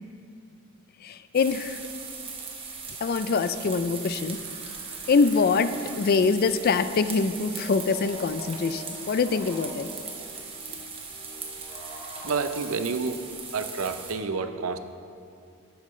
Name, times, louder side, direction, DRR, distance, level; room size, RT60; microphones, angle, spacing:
voice 1, 1.0-1.8 3.0-4.4 5.1-9.9, left 4 dB, 45° left, 12 dB, 0.3 m, -24 dB
sound 1, 1.3-14.1, right 5 dB, 25° right, 1.0 m, -39 dB
sound 2, 4.1-12.3, left 1 dB, 10° left, 2.6 m, -47 dB
voice 2, 12.2-13.2 13.5-14.8, right 4 dB, 75° right, 9 dB, 0.6 m, -29 dB
12.5 x 8.9 x 3.2 m, 2.4 s
head